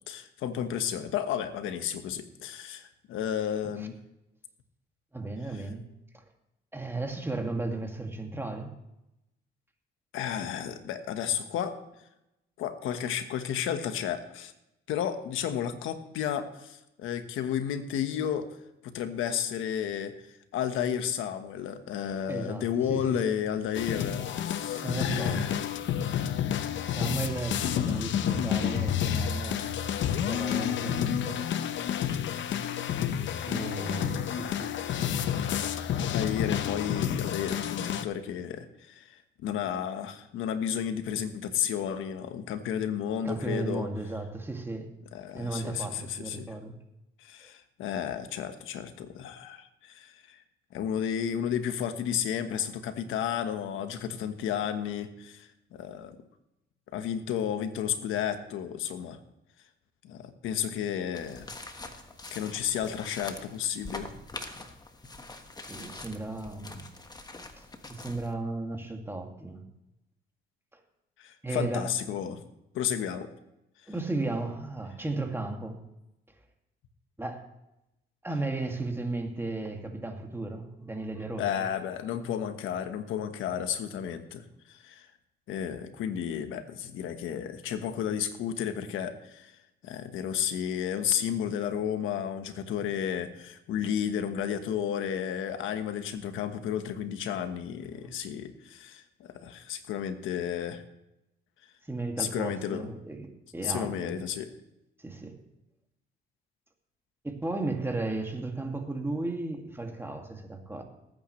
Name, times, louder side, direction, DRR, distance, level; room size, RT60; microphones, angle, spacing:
voice 1, 0.1-3.9 10.1-11.8 12.6-14.5 14.9-18.5 18.8-20.1 20.5-25.6 36.0-43.9 45.1-46.5 47.2-50.4 50.7-56.2 56.9-59.2 60.0-61.5 62.3-64.1 71.2-72.4 72.7-73.3 81.4-85.1 85.5-89.5 89.8-100.8 102.2-102.9 103.6-104.5, left 9 dB, 90° left, 8 dB, 1.3 m, -32 dB
voice 2, 5.1-5.9 6.1-6.2 6.7-8.7 22.3-23.3 24.7-25.6 26.9-29.7 30.2-31.5 33.5-34.7 43.2-44.9 45.3-46.8 47.4-47.5 65.6-66.9 67.9-69.7 71.4-71.9 73.9-75.8 77.2-77.4 78.2-81.5 97.9-98.1 101.9-104.2 105.0-105.4 107.2-110.8, right 2 dB, 10° right, 3 dB, 2.3 m, -35 dB
sound 1, 23.7-38.0, left 9 dB, 70° left, 0.8 m, -30 dB
sound 2, 61.1-68.3, left 2 dB, 20° left, 1.4 m, -44 dB
19.5 x 9.0 x 3.2 m, 0.88 s
cardioid pair, 90°, 20 cm